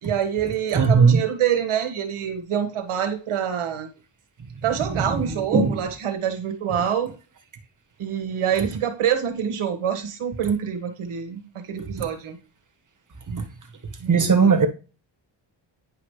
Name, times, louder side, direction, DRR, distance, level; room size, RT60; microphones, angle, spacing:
voice 1, 0.0-3.9 4.6-7.1 8.0-12.4 13.3-13.4 14.0-14.2, right 9 dB, 90° right, 1.8 m, -26 dB
voice 2, 0.7-1.2 4.8-5.8 12.0-12.1 13.4-13.5 14.1-14.7, right 5 dB, 40° right, 1.7 m, -19 dB
10.0 x 5.2 x 3.3 m
cardioid pair, 85°, 49 cm